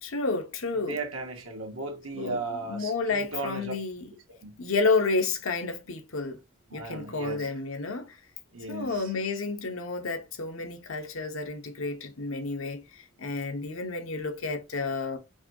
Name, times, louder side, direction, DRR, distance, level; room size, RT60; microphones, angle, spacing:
voice 1, 0.0-1.0 2.1-4.1 4.6-6.4 6.7-8.2 8.7-15.2, left 3 dB, 75° left, 0.8 m, -30 dB
voice 2, 0.8-3.7 4.4-4.5 6.7-7.5 8.5-9.0, right 3 dB, 85° right, 1.3 m, -36 dB
4.7 x 2.3 x 2.7 m
head